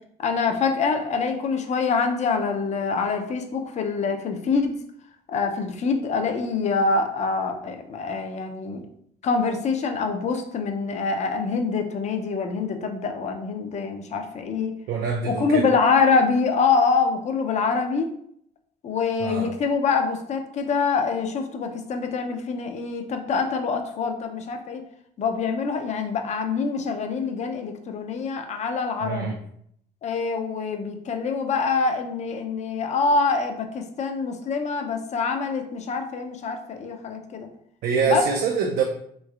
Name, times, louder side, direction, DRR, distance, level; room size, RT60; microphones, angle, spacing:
voice 1, 0.2-4.7 5.3-8.8 9.2-14.7 15.3-18.1 18.8-24.8 25.2-29.3 30.0-37.5 38.1-38.2, left 4 dB, 40° left, 5 dB, 0.5 m, -25 dB
voice 2, 14.9-15.7 19.2-19.5 29.0-29.4 37.8-38.8, right 5 dB, 70° right, 1 dB, 0.5 m, -25 dB
3.1 x 3.1 x 2.4 m, 0.69 s
cardioid pair, 110°, 17 cm